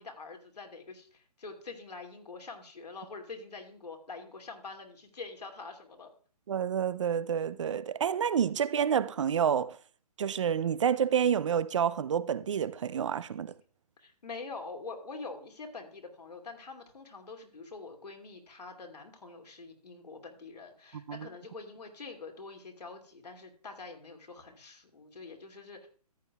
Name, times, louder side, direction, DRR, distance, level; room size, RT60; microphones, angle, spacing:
voice 1, 0.0-6.1 14.0-25.9, left 4 dB, 80° left, 2.5 m, -45 dB
voice 2, 6.5-9.8 10.2-13.5 21.1-21.3, right 8 dB, 50° right, 0.5 m, -29 dB
14.0 x 9.3 x 2.3 m
hypercardioid pair, 150°, 20 cm